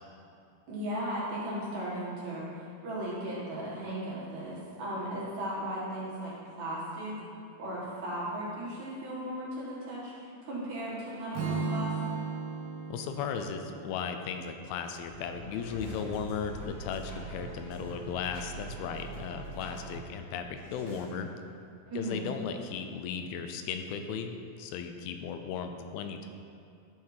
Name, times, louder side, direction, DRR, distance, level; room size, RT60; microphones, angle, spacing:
voice 1, 0.7-7.1 7.6-11.9 21.9-22.2, right 1 dB, 55° right, -7 dB, 2.7 m, -36 dB
Strum, 11.3-15.5, right 4 dB, 80° right, 2.9 m, -37 dB
voice 2, 12.9-21.3 22.0-26.3, left 6 dB, 85° left, 6 dB, 2.4 m, -36 dB
sound 1, 15.0-20.0 20.5-21.0, right 2 dB, 40° left, 1.2 m, -43 dB
11.5 x 4.6 x 4.7 m, 2.6 s
omnidirectional pair, 4.3 m